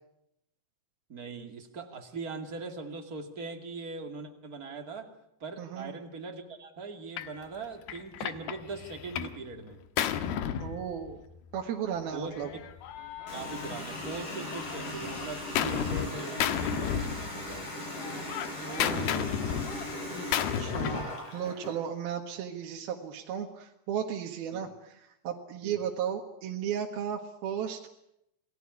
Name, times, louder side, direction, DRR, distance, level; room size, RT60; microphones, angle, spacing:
voice 1, 1.1-5.1 5.4-9.8 12.1-12.6 13.3-17.7 24.5-24.6 25.6-25.8, right 3 dB, 30° right, 5 dB, 2.0 m, -41 dB
voice 2, 5.6-5.9 10.6-11.2 11.5-12.5 18.6-19.3 20.6-24.7 25.2-27.9, right 8 dB, 65° right, 2 dB, 3.2 m, -35 dB
Gunshot gunfire, 7.2-7.4 7.9-9.4 9.7-11.4 12.3-14.2 14.5-16.1 16.4-17.6 17.9-21.1, left 9 dB, 70° left, 2.9 m, -33 dB
Water tap faucet, 13.3-21.8, left 1 dB, 45° left, 9.5 m, -38 dB
28.5 x 19.0 x 9.8 m, 0.82 s
omnidirectional pair, 5.1 m